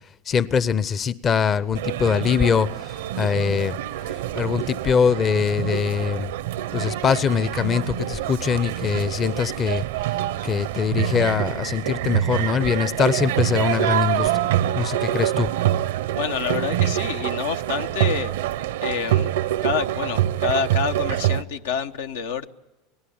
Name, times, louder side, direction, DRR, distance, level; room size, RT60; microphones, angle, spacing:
voice 1, 0.3-3.8 4.3-6.3 6.7-9.8 10.4-14.3 14.8-15.5, left 6 dB, 35° left, 17 dB, 0.7 m, -22 dB
sound 1, 1.8-21.4, right 13 dB, 80° right, 0.8 m, -26 dB
voice 2, 16.1-18.3 18.8-19.3 19.6-22.5, left 6 dB, 85° left, 7 dB, 1.1 m, -27 dB
27.0 x 19.0 x 8.7 m, 1.0 s
hypercardioid pair, 100°, 0 cm